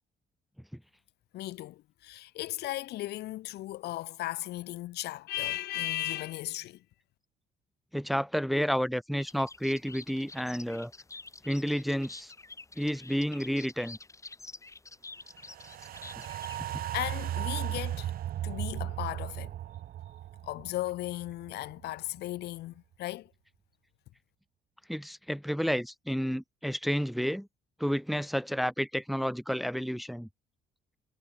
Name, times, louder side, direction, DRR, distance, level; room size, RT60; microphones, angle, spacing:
voice 1, 1.3-6.8 16.7-19.5 20.4-23.3, left 16 dB, 75° left, 2.4 m, -36 dB
voice 2, 7.9-10.9 11.4-12.3 12.8-14.0 24.9-27.5 27.8-30.3, equal, ahead, 1.3 m, -30 dB
sound 1, 9.2-16.6, left 3 dB, 20° left, 6.6 m, -48 dB
sound 2, 15.4-21.8 22.2-22.3, right 12 dB, 60° right, 1.9 m, -36 dB
cardioid pair, 110°, 17 cm